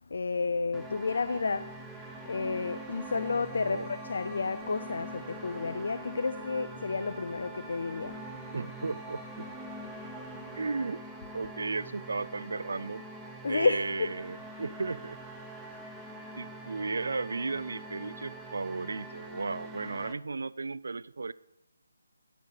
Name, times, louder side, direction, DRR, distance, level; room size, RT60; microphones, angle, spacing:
voice 1, 0.1-1.7 2.2-8.5 10.3-10.6 13.4-14.1, left 4 dB, 60° left, 0.5 m, -31 dB
sound 1, 0.7-20.1, right 1 dB, ahead, 0.8 m, -44 dB
voice 2, 8.5-9.5 10.6-11.0 11.3-13.0 13.5-15.2 16.4-21.3, right 3 dB, 65° right, 0.4 m, -35 dB
11.5 x 5.7 x 6.5 m
figure-of-eight pair, 160°, 0 cm